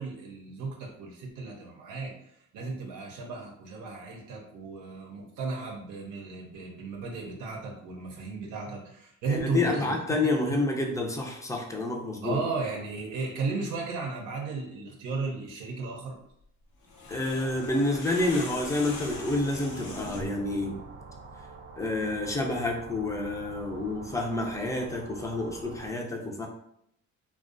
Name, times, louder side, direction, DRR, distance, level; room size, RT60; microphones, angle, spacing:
voice 1, 0.0-10.6 12.2-16.2, right 4 dB, 85° right, 0 dB, 0.6 m, -35 dB
voice 2, 9.3-12.4 17.1-20.8 21.8-26.5, left 2 dB, 10° left, 0 dB, 0.5 m, -29 dB
sound 1, 16.8-20.4, left 2 dB, 85° left, 0.7 m, -40 dB
sound 2, 18.2-25.9, right 4 dB, 45° right, 0.6 m, -46 dB
2.4 x 2.2 x 2.5 m, 0.73 s
cardioid pair, 90°, 30 cm